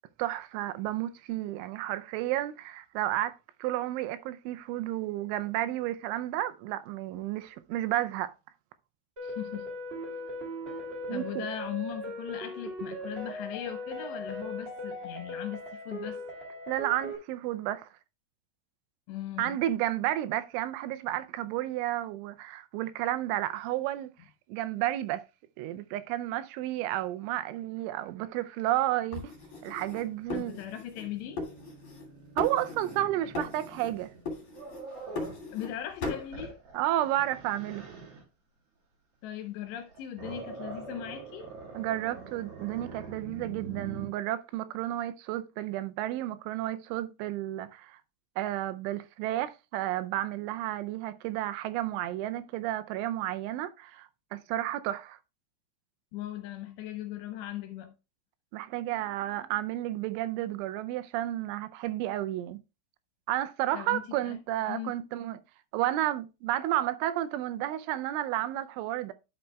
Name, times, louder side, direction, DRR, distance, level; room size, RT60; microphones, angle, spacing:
voice 1, 0.2-3.3 3.6-8.3 11.1-11.4 16.7-17.9 19.4-24.1 24.5-25.2 25.6-29.3 29.6-30.6 32.4-34.1 36.7-37.8 41.7-48.0 48.4-55.2 58.5-62.6 63.3-65.4 65.7-69.1, right 14 dB, 85° right, 3.0 m, -32 dB
voice 2, 9.2-9.7 11.1-16.2 19.1-19.7 30.3-31.4 35.5-36.6 39.2-41.5 56.1-58.0 63.7-64.4 64.7-64.9, left 12 dB, 75° left, 2.8 m, -39 dB
sound 1, 9.2-17.2, equal, 20° right, 1.4 m, -39 dB
sound 2, 29.1-31.1 31.4-32.1 32.4-33.1 33.3-34.0 34.3-35.7 36.0-36.3, left 3 dB, 40° left, 2.5 m, -38 dB
Growling, 29.3-35.5 35.9-38.2 39.7-44.1, right 5 dB, 55° right, 1.8 m, -45 dB
11.5 x 6.5 x 2.2 m
omnidirectional pair, 5.5 m